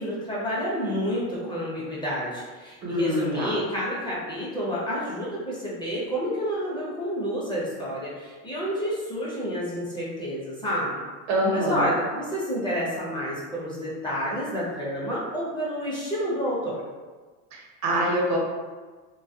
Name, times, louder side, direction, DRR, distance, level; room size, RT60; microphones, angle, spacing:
voice 1, 0.0-11.0 11.5-16.8, equal, 10° left, -7 dB, 0.7 m, -29 dB
voice 2, 2.8-3.6 11.3-11.9 17.5-18.4, equal, 70° right, -2 dB, 0.9 m, -25 dB
2.2 x 2.1 x 2.6 m, 1.4 s
supercardioid pair, 100°, 41 cm